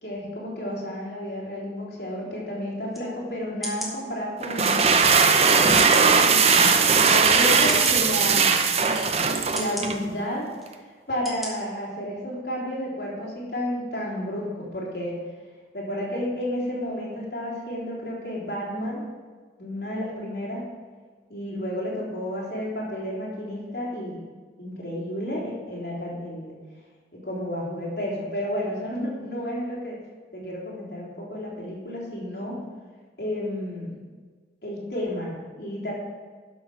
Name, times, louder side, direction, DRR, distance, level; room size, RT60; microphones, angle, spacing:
voice 1, 0.0-5.8 6.2-8.7 9.5-10.5 11.1-15.2 15.7-19.0 19.6-20.6 21.3-24.2 24.6-26.5 27.2-30.0 30.3-32.6 33.2-34.0 34.6-35.9, equal, 65° left, -6 dB, 3.5 m, -31 dB
sound 1, 2.9-3.0 3.6-3.9 4.7-4.8 5.8-6.1 6.8-6.9 7.7-8.0 8.8-8.9 9.5-9.9 10.6-10.7 11.2-11.5 11.9-12.0, equal, ahead, 1.5 m, -34 dB
sound 2, 4.4-10.0, right 5 dB, 35° right, 0.6 m, -19 dB
11.5 x 6.2 x 5.2 m, 1.5 s
head